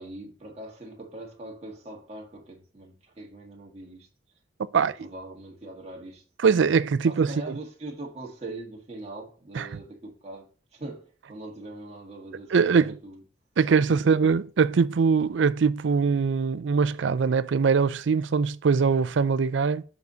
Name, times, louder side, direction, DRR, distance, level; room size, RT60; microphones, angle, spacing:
voice 1, 0.0-4.1 4.8-6.2 7.0-10.5 10.7-13.2 13.9-14.2, right 2 dB, 35° right, 1.6 m, -41 dB
voice 2, 4.7-5.1 6.4-7.6 9.5-9.7 12.5-13.0 13.6-19.8, right 5 dB, 85° right, 0.4 m, -22 dB
7.1 x 4.0 x 4.7 m
head